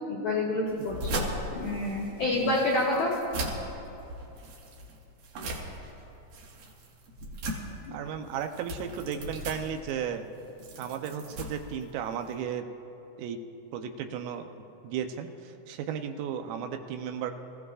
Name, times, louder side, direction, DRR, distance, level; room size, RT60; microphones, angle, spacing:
voice 1, 0.1-1.2 1.5-3.1, left 2 dB, 90° left, -3 dB, 1.6 m, -28 dB
sound 1, 0.7-12.4, right 1 dB, 60° right, 2.7 m, -38 dB
voice 2, 7.9-10.3 10.8-12.7 13.2-13.4 13.7-14.5 14.8-17.3, right 8 dB, 85° right, 6 dB, 3.4 m, -34 dB
25.0 x 15.5 x 2.4 m, 2.9 s
omnidirectional pair, 5.7 m